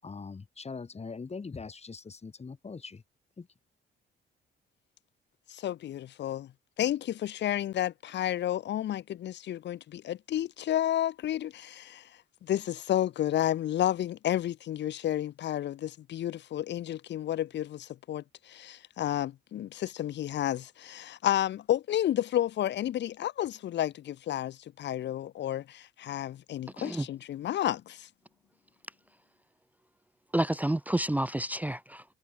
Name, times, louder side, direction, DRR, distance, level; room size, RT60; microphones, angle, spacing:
voice 1, 0.0-3.0 3.4-3.5, left 4 dB, 30° left, 5.5 m, -42 dB
voice 2, 5.5-6.5 6.8-12.0 12.4-28.1, left 12 dB, 60° left, 0.8 m, -31 dB
voice 3, 26.8-27.1 30.3-32.0, right 1 dB, 10° right, 0.6 m, -29 dB
cardioid pair, 90°, 20 cm